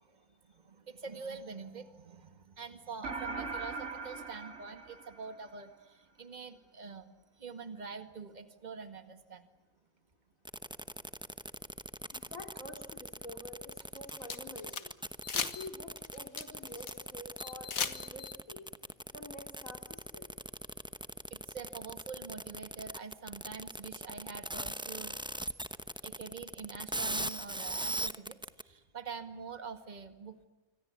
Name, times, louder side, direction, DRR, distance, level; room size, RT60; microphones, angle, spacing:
voice 1, 0.0-9.5 12.2-12.3 21.3-25.2 26.0-30.4, right 5 dB, 30° right, 9 dB, 2.0 m, -46 dB
sound 1, 3.0-5.7, right 3 dB, 55° right, 2.7 m, -40 dB
sound 2, 10.4-28.6, right 1 dB, 5° right, 0.7 m, -39 dB
voice 2, 12.1-14.9 15.3-18.7 19.1-20.3, left 2 dB, 70° left, 4 dB, 3.6 m, -48 dB
sound 3, 13.8-14.8 15.2-15.7 16.0-16.9 17.4-18.3, left 6 dB, 90° left, 1.9 m, -37 dB
27.5 x 25.0 x 8.4 m, 1.1 s
omnidirectional pair, 1.4 m